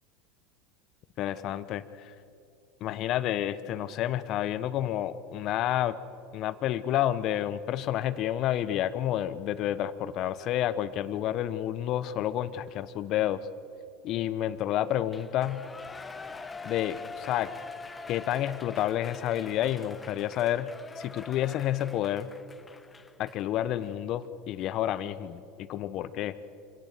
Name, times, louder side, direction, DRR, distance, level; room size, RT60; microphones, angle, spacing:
voice 1, 1.2-2.1 2.8-6.0 6.3-13.4 14.0-15.6 16.6-17.5 18.1-20.7 21.0-22.3 23.2-26.4, left 12 dB, 50° left, 15 dB, 1.0 m, -30 dB
Shout / Cheering, 15.1-23.4 23.8-23.9, left 4 dB, 20° left, 1.0 m, -44 dB
26.0 x 17.0 x 6.8 m, 2.7 s
hypercardioid pair, 90°, 0 cm